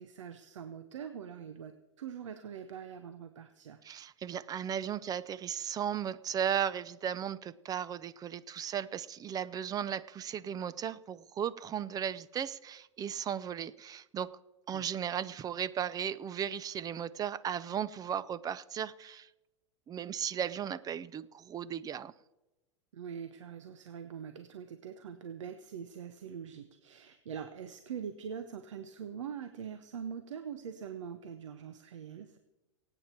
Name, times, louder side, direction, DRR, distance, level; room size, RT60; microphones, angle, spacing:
voice 1, 0.0-3.8 14.7-14.9 22.9-32.4, right 7 dB, 85° right, 9 dB, 1.0 m, -43 dB
voice 2, 3.8-14.3 14.7-19.3 19.9-22.1, right 9 dB, 25° right, 17 dB, 0.6 m, -36 dB
23.5 x 8.9 x 4.5 m, 1.0 s
hypercardioid pair, 115°, 15 cm